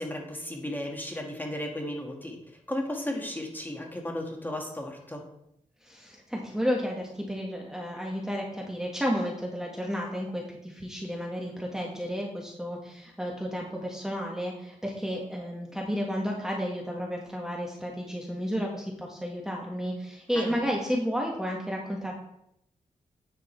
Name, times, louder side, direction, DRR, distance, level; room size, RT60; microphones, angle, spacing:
voice 1, 0.0-5.2 20.3-20.6, left 1 dB, 15° left, 1 dB, 2.0 m, -35 dB
voice 2, 5.8-22.1, equal, 5° right, -2 dB, 1.5 m, -32 dB
9.7 x 5.2 x 4.6 m, 0.77 s
cardioid pair, 85°, 13 cm